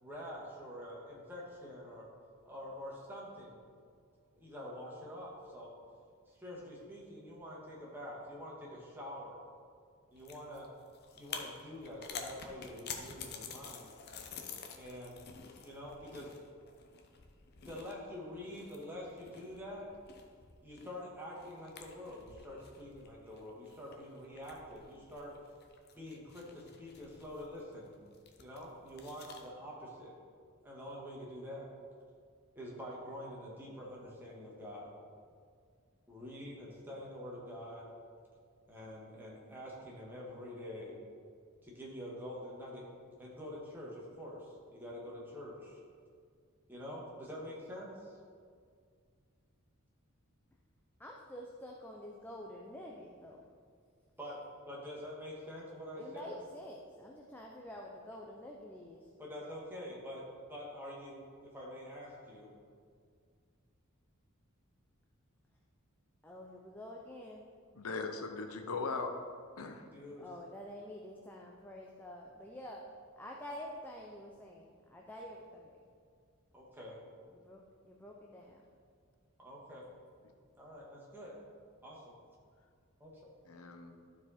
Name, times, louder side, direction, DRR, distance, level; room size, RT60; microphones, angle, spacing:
voice 1, 0.0-2.1 2.5-3.6 4.4-5.7 6.3-9.4 10.1-10.7 11.2-13.9 14.7-15.2 15.6-16.3 17.7-19.9 20.6-25.3 26.0-28.0 28.4-30.1 30.6-31.7 32.6-34.9 36.1-37.9 38.7-41.0 41.6-42.9 43.2-45.8 46.7-48.1 54.2-54.4 54.7-56.4 59.2-60.2 60.5-61.3 61.5-62.5 69.9-70.3 76.5-77.0 79.4-79.9 80.6-81.3 81.8-82.1 83.0-83.1, equal, 10° right, -5 dB, 1.8 m, -46 dB
sound 1, 10.1-29.5, left 6 dB, 50° left, 0.8 m, -50 dB
voice 2, 51.0-53.4 56.0-59.0 66.2-67.5 70.2-72.8 73.2-75.8 77.3-78.6, left 1 dB, 10° left, -2 dB, 0.6 m, -48 dB
voice 3, 67.7-69.1 69.6-69.8 83.5-84.0, left 4 dB, 85° left, 5 dB, 0.8 m, -39 dB
12.5 x 4.8 x 4.3 m, 2.1 s
head